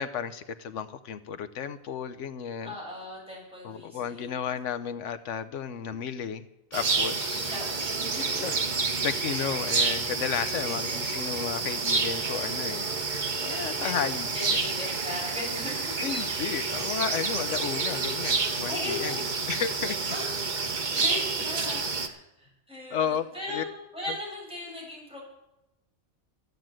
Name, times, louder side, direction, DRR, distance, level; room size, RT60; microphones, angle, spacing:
voice 1, 0.0-2.8 3.6-6.5 6.7-7.5 8.4-8.5 9.0-12.9 13.4-14.6 16.0-19.2 19.5-20.0 20.9-21.0 22.9-23.6, left 7 dB, 80° left, 11 dB, 1.0 m, -33 dB
voice 2, 2.6-4.3 7.3-8.4 10.6-11.1 13.8-14.0 14.3-16.4 18.7-19.4 20.1-20.3 20.5-23.7 23.9-25.2, left 1 dB, 5° right, -4 dB, 6.3 m, -38 dB
sound 1, 6.7-22.1, right 4 dB, 40° right, 1.0 m, -29 dB
13.5 x 9.3 x 7.6 m, 0.94 s
omnidirectional pair, 1.3 m